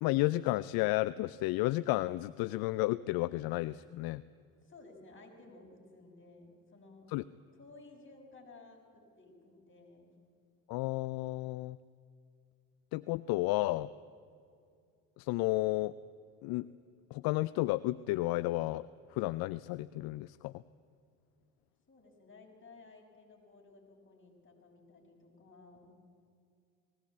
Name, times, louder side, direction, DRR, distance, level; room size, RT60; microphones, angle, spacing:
voice 1, 0.0-4.2 7.1-7.2 10.7-11.8 12.9-13.9 15.2-15.9 16.4-16.7 17.1-20.6, left 19 dB, 65° left, 17 dB, 0.5 m, -32 dB
voice 2, 4.6-7.1 7.6-10.1 21.9-26.0, left 3 dB, 30° left, 0 dB, 6.2 m, -56 dB
19.5 x 17.0 x 8.5 m, 2.3 s
hypercardioid pair, 65°, 39 cm